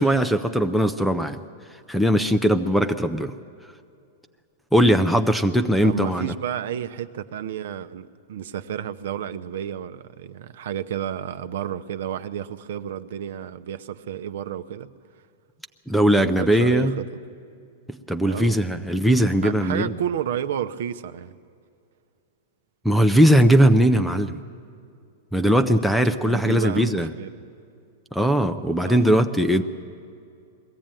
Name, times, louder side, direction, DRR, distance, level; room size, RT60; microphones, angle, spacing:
voice 1, 0.0-1.4 1.9-3.3 4.7-6.3 15.9-16.9 18.1-19.9 22.8-24.4 25.3-27.1 28.1-29.6, equal, ahead, 9 dB, 0.4 m, -19 dB
voice 2, 5.8-14.9 16.2-17.0 18.2-18.6 19.4-21.3 26.2-27.4 28.9-29.0, right 9 dB, 65° right, 12 dB, 0.7 m, -31 dB
21.5 x 15.5 x 9.0 m, 2.4 s
supercardioid pair, 170°, 0 cm